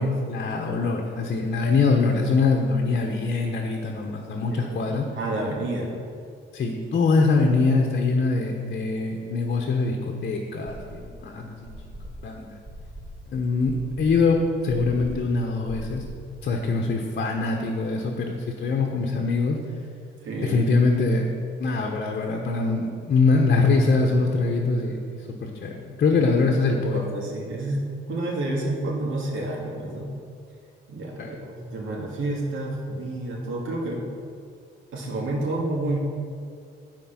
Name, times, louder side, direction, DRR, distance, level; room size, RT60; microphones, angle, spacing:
voice 1, 0.0-5.1 6.5-11.7 12.2-12.6 13.3-16.0 16.4-19.6 20.4-21.3 21.6-25.0 25.4-27.0 31.2-31.3, left 3 dB, 50° left, 1 dB, 1.1 m, -23 dB
voice 2, 4.5-4.8 5.2-6.0 20.2-20.6 26.1-26.4 26.9-27.8 28.1-30.1 30.9-34.1 34.9-36.0, right 2 dB, 85° right, -2 dB, 2.2 m, -29 dB
sound 1, 10.6-11.2 11.6-16.3, equal, 30° right, 2.7 m, -40 dB
12.0 x 4.6 x 5.9 m, 2.3 s
cardioid pair, 90°, 20 cm